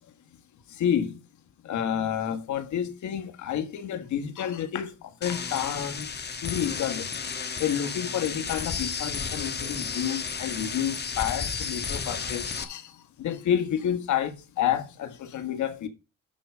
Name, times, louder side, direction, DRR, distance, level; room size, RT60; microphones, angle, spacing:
voice 1, 0.8-1.2 1.7-4.9 5.2-6.1 6.4-7.1 7.6-12.9 13.2-15.9, left 9 dB, 75° left, 1.6 m, -29 dB
sound 1, 5.2-12.6, left 5 dB, 35° left, 1.2 m, -33 dB
11.5 x 4.8 x 6.3 m
cardioid pair, 90°, 30 cm